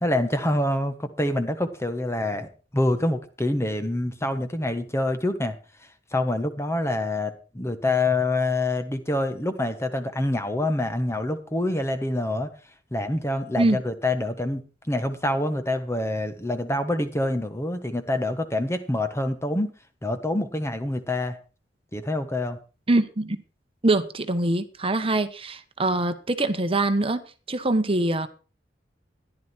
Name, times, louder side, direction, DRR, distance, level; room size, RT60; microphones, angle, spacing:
voice 1, 0.0-5.6 6.1-12.5 12.9-14.6 14.9-19.7 20.0-21.4 21.9-22.6, left 1 dB, 15° left, 9 dB, 1.2 m, -26 dB
voice 2, 22.9-23.4 23.8-27.2 27.5-28.3, right 2 dB, 30° right, 9 dB, 1.1 m, -23 dB
14.5 x 11.0 x 4.5 m, 0.35 s
head